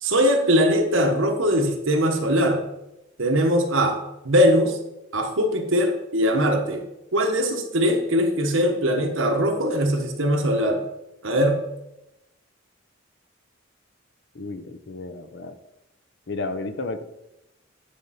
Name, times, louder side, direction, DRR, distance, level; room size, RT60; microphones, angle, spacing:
voice 1, 0.0-2.7 3.2-4.8 5.1-10.9 11.2-11.7, equal, 80° right, 4 dB, 1.3 m, -21 dB
voice 2, 14.3-15.5 16.3-17.0, left 3 dB, 60° left, 9 dB, 0.7 m, -32 dB
9.8 x 5.3 x 4.2 m, 0.91 s
head